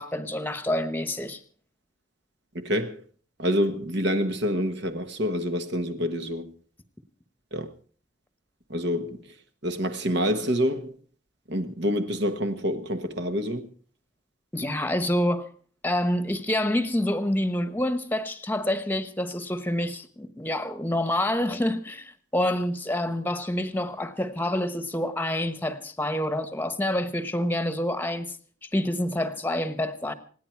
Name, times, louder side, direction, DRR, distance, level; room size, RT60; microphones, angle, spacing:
voice 1, 0.0-1.4 14.5-15.5 15.8-28.4 28.6-30.1, left 1 dB, 10° left, 1.1 m, -27 dB
voice 2, 2.5-3.0 3.4-6.5 7.5-7.7 8.7-9.2 9.6-10.9 11.5-13.7, equal, 60° right, 1.5 m, -27 dB
27.0 x 10.0 x 4.6 m
head